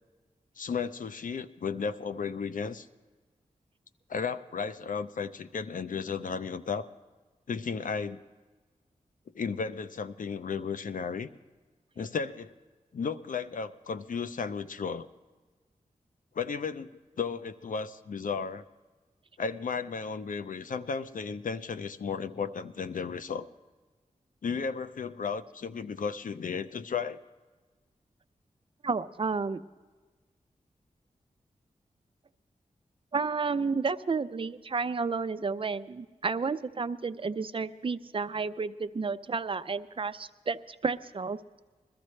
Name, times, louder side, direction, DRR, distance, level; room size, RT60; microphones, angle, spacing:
voice 1, 0.6-2.9 4.1-6.9 7.5-8.2 9.3-11.3 12.0-12.5 12.9-15.1 16.3-16.9 17.2-18.6 19.4-23.5 24.4-27.2, left 5 dB, 75° left, 11 dB, 0.6 m, -34 dB
voice 2, 28.8-29.6 33.1-41.4, right 4 dB, 40° right, 11 dB, 0.5 m, -31 dB
21.0 x 13.5 x 3.2 m, 1.3 s
wide cardioid pair, 65°, 14 cm